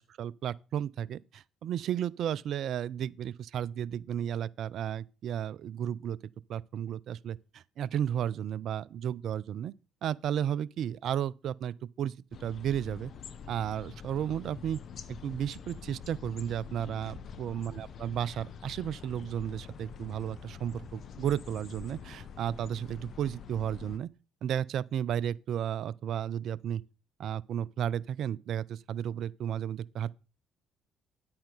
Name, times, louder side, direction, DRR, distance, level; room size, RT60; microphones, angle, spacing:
voice 1, 0.0-6.2 6.5-9.7 10.0-12.1 12.4-13.1 13.5-14.8 15.1-24.1 24.4-26.8 27.2-30.1, right 9 dB, 65° right, 0.4 m, -33 dB
sound 1, 12.3-24.0, left 7 dB, 55° left, 1.0 m, -46 dB
10.5 x 8.7 x 3.9 m
hypercardioid pair, 50°, 0 cm